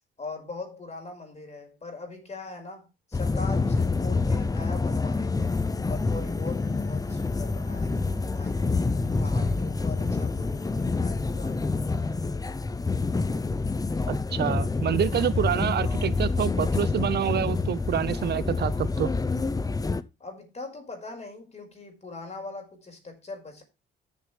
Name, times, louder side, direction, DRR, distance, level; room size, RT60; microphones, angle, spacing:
voice 1, 0.2-5.5 5.9-8.8 9.0-12.1 20.2-23.6, left 3 dB, 35° left, 5.2 m, -41 dB
sound 1, 3.1-20.0, left 3 dB, 20° left, 0.8 m, -27 dB
voice 2, 14.1-19.1, right 10 dB, 55° right, 0.7 m, -27 dB
13.5 x 7.4 x 3.4 m
cardioid pair, 90°, 20 cm